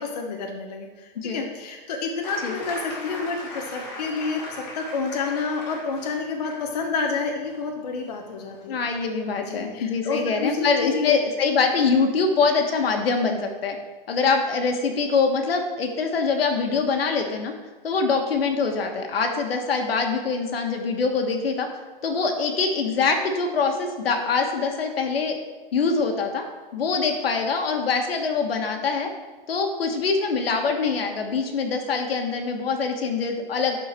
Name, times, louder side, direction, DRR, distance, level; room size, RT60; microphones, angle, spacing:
voice 1, 0.0-8.8 9.4-11.2, left 4 dB, 45° left, 2 dB, 0.9 m, -29 dB
sound 1, 2.2-9.8 11.0-11.1, left 2 dB, 25° left, 1.4 m, -40 dB
voice 2, 8.7-13.8 14.1-17.5 17.8-21.7 22.0-25.4 25.7-26.4 26.7-29.1 29.5-33.7, left 4 dB, 80° left, 4 dB, 1.6 m, -24 dB
11.5 x 4.5 x 4.5 m, 1.3 s
hypercardioid pair, 180°, 29 cm